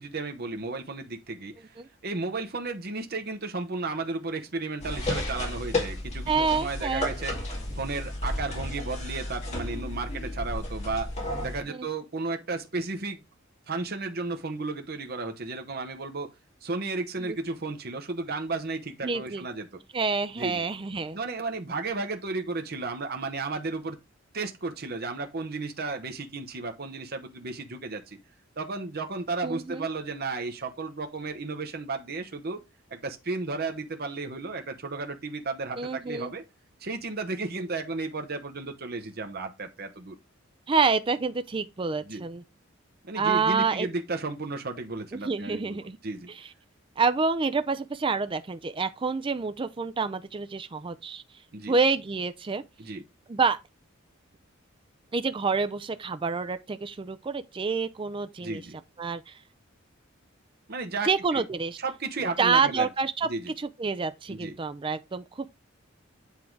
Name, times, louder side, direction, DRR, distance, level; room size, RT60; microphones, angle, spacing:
voice 1, 0.0-11.1 11.4-13.2 13.7-16.3 16.6-19.7 20.4-20.6 21.1-24.0 24.3-28.2 28.6-32.6 32.9-36.4 36.8-40.1 42.1-42.2 43.0-46.3 51.5-51.8 52.8-53.0 58.4-58.8 60.7-61.4 61.8-62.9 63.3-63.4 64.3-64.6, right 3 dB, 50° right, 1.0 m, -34 dB
sound 1, 4.8-11.6, left 1 dB, 35° left, 2.3 m, -33 dB
voice 2, 6.3-7.1 11.7-11.9 17.2-17.4 19.0-19.4 19.9-21.2 29.4-29.9 35.8-36.3 40.7-42.4 43.2-43.9 45.1-46.0 46.3-46.5 47.0-51.2 51.7-52.6 53.3-53.6 55.1-58.6 59.0-59.4 61.1-61.8 62.4-63.3 63.6-65.5, right 4 dB, 25° right, 0.4 m, -28 dB
8.4 x 3.7 x 4.5 m
head